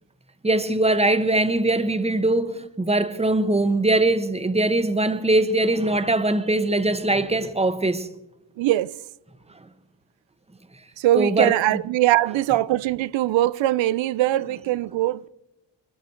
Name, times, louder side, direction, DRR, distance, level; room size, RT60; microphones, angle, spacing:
voice 1, 0.4-8.1 11.1-11.6, right 2 dB, 15° right, 1.3 m, -21 dB
voice 2, 8.6-8.9 11.0-15.3, right 15 dB, 75° right, 0.6 m, -21 dB
21.0 x 13.5 x 4.5 m
cardioid pair, 75°, 45 cm